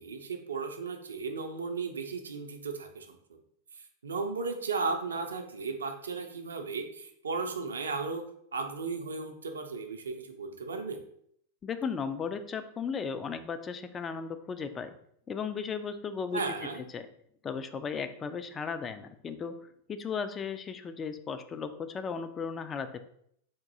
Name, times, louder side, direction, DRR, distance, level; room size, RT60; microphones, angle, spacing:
voice 1, 0.0-3.2 4.0-8.2 8.5-11.0 16.3-16.8, right 4 dB, 70° right, 5 dB, 0.5 m, -35 dB
voice 2, 11.6-14.9 15.3-16.4 16.9-17.1 17.4-19.5 19.9-23.1, left 6 dB, 25° left, 10 dB, 0.3 m, -35 dB
3.6 x 2.6 x 4.0 m, 0.69 s
figure-of-eight pair, 90°, 0 cm